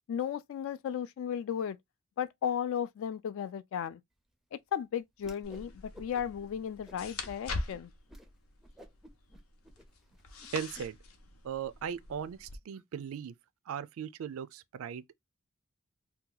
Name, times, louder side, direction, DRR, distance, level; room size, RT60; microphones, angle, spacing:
voice 1, 0.1-1.8 2.2-4.0 4.5-7.9, left 8 dB, 65° left, 0.3 m, -35 dB
Whoosh swoosh swish, 5.2-5.7 5.9-6.5 6.8-7.3 7.7-7.8 8.1-8.3 8.6-10.8, equal, ahead, 0.4 m, -53 dB
sound 1, 5.4-12.6, left 3 dB, 90° left, 0.7 m, -43 dB
voice 2, 10.5-11.0 11.4-13.3 13.7-15.2, right 8 dB, 70° right, 0.3 m, -38 dB
2.8 x 2.3 x 3.7 m
head